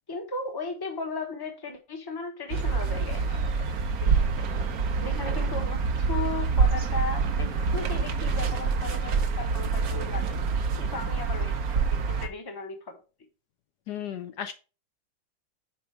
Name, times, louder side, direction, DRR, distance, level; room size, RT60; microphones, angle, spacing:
voice 1, 0.1-3.4 3.7-4.7 5.0-10.4 10.8-13.0, left 3 dB, 15° left, 0.9 m, -36 dB
sound 1, 2.5-12.3, right 5 dB, 60° right, 1.1 m, -26 dB
voice 2, 13.9-14.5, left 9 dB, 70° left, 1.1 m, -34 dB
6.1 x 4.6 x 4.6 m
omnidirectional pair, 1.9 m